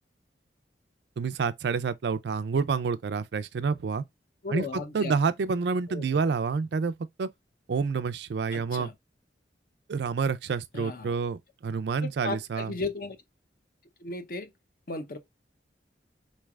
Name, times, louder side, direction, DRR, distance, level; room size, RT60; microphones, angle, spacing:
voice 1, 1.2-4.0 4.5-6.9 7.2-7.3 7.7-8.9 9.9-12.7, right 5 dB, 65° right, 0.4 m, -28 dB
voice 2, 4.4-5.2 5.9-6.2 8.5-8.9 10.7-11.1 12.0-13.2 14.0-14.5 14.9-15.2, left 3 dB, 50° left, 0.6 m, -35 dB
4.0 x 3.2 x 2.3 m
head